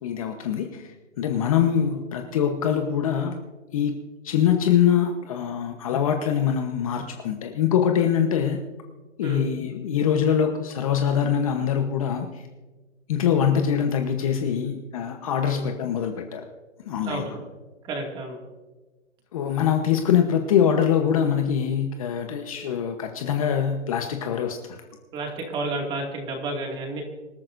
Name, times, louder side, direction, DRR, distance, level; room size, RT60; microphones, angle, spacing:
voice 1, 0.0-3.4 3.7-3.9 4.2-8.6 9.2-12.5 13.1-16.5 16.9-17.3 19.3-24.8, left 8 dB, 30° left, 5 dB, 1.0 m, -23 dB
voice 2, 17.1-17.4 17.8-18.4 25.1-27.0, right 2 dB, 15° right, 1 dB, 2.2 m, -31 dB
26.0 x 13.5 x 2.6 m, 1.2 s
hypercardioid pair, 160°, 35 cm